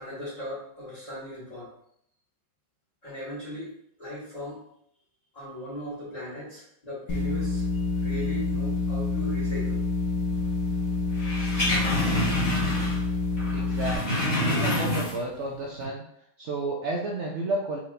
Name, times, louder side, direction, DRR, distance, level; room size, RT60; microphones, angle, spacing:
voice 1, 0.0-1.7 3.0-3.7 4.0-4.6 5.3-9.8, left 1 dB, 20° left, -13 dB, 1.9 m, -38 dB
sound 1, 7.1-13.9, left 3 dB, 85° left, 1.5 m, -27 dB
sound 2, 11.2-13.1 13.4-15.4 15.7-15.9, left 1 dB, 50° left, 1.6 m, -27 dB
voice 2, 13.5-16.0 16.4-17.8, right 2 dB, 75° right, -2 dB, 0.6 m, -31 dB
4.4 x 4.1 x 2.5 m, 0.71 s
omnidirectional pair, 1.9 m